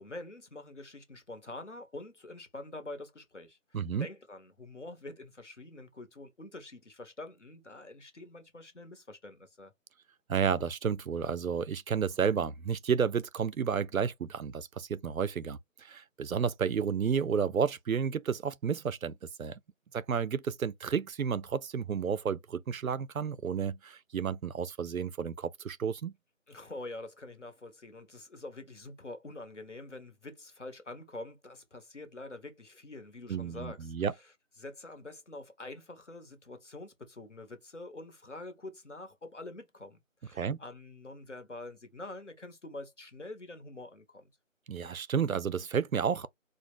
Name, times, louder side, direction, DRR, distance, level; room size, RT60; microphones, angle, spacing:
voice 1, 0.0-9.7 26.5-33.9 34.6-44.3, left 2 dB, 60° left, 1.2 m, -46 dB
voice 2, 3.7-4.1 10.3-19.6 19.9-26.1 33.3-34.1 40.4-40.6 44.7-46.3, right 7 dB, 85° right, 0.6 m, -31 dB
4.3 x 2.2 x 3.0 m
figure-of-eight pair, 175°, 40 cm